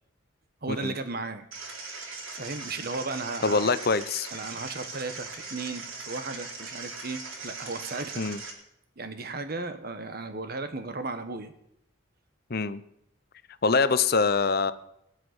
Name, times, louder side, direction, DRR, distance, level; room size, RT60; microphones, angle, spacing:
voice 1, 0.6-1.4 2.3-3.7 4.3-8.2 9.0-11.5, right 3 dB, 50° right, 9 dB, 1.2 m, -35 dB
sound 1, 1.5-8.5, right 4 dB, 80° right, 4.1 m, -40 dB
voice 2, 3.4-4.3 8.2-8.4 12.5-12.8 13.6-14.7, left 4 dB, 50° left, 14 dB, 0.8 m, -24 dB
19.5 x 6.7 x 9.6 m, 0.79 s
head